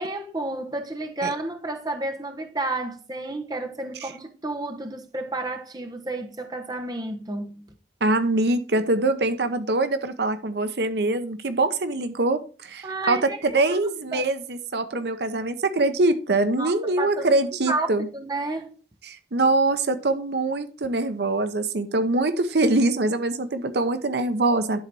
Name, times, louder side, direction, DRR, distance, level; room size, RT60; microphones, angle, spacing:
voice 1, 0.0-7.7 12.8-13.8 14.1-14.2 16.6-16.7 17.0-17.9 18.1-18.7, right 2 dB, 20° right, 0.9 m, -31 dB
voice 2, 8.0-13.2 13.5-18.1 19.0-24.8, right 2 dB, 65° right, 0.8 m, -23 dB
11.0 x 4.0 x 4.6 m
head